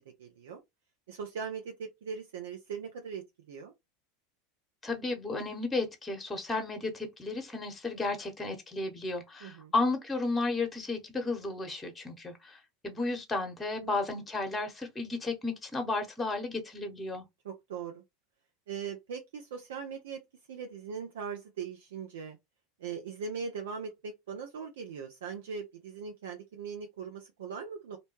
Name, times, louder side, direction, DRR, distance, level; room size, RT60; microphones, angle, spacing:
voice 1, 0.2-0.6 1.1-3.7 9.4-9.7 13.8-14.0 17.4-18.0 18.7-20.2 20.5-22.4 22.8-28.0, right 6 dB, 70° right, 0.5 m, -40 dB
voice 2, 4.8-17.3, left 3 dB, 15° left, 0.8 m, -33 dB
2.6 x 2.1 x 3.0 m
hypercardioid pair, 85°, 0 cm